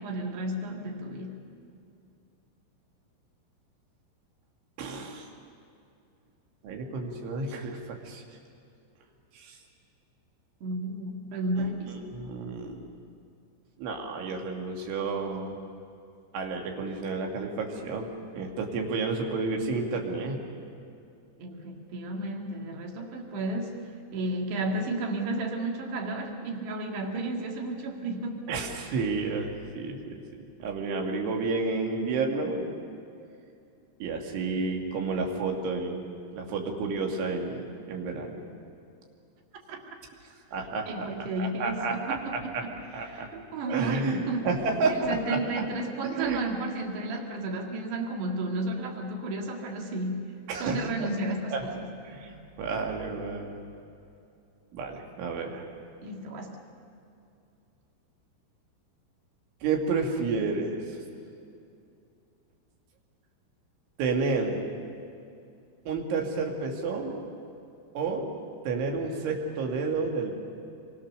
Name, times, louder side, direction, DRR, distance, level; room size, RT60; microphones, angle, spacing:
voice 1, 0.0-1.4 10.6-12.1 21.4-23.8 24.1-28.4 39.7-39.8 40.9-42.7 43.1-44.5 44.9-50.3 50.6-51.9 56.0-56.6, right 2 dB, 65° right, 2 dB, 4.2 m, -33 dB
voice 2, 4.8-5.3 6.6-8.2 9.3-9.6 11.6-12.8 13.8-15.5 16.3-20.4 28.5-30.2 30.6-32.8 34.0-38.4 40.5-41.1 41.4-42.6 42.9-43.3 43.6-45.7 46.1-46.4 50.5-51.1 51.5-51.7 52.0-52.3 52.6-53.6 54.7-55.6 59.6-61.0 64.0-64.6 65.9-67.2 67.9-68.3 68.6-70.4, right 4 dB, 85° right, 2 dB, 4.8 m, -31 dB
27.0 x 23.5 x 6.7 m, 2.6 s
omnidirectional pair, 5.3 m